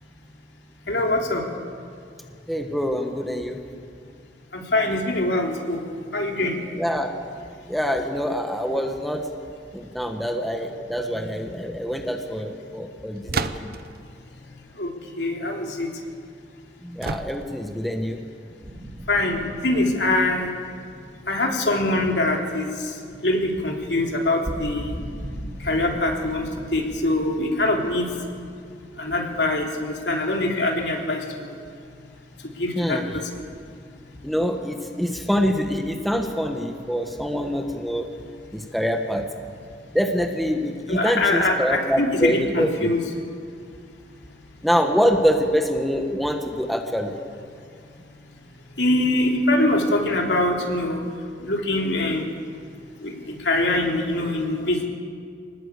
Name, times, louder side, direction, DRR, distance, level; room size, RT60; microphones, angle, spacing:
voice 1, 0.9-1.4 4.5-5.8 6.1-6.6 14.8-15.9 19.1-20.5 21.3-22.7 23.2-25.0 25.6-26.5 26.7-28.1 29.0-31.6 32.6-33.3 40.9-43.0 48.8-51.0 51.4-52.2 53.0-54.9, left 2 dB, 70° left, 1 dB, 3.4 m, -23 dB
voice 2, 2.5-3.6 6.7-7.1 7.7-9.3 9.7-13.7 16.8-18.2 32.8-33.0 34.2-38.1 38.5-39.2 39.9-42.9 44.6-47.1, equal, ahead, 3 dB, 1.4 m, -25 dB
sound 1, 13.3-14.0 17.0-17.7, right 4 dB, 55° right, 0.9 m, -30 dB
sound 2, 18.6-23.5 23.8-23.9 24.2-29.7, equal, 20° right, 2.3 m, -39 dB
24.5 x 20.0 x 8.4 m, 2.3 s
head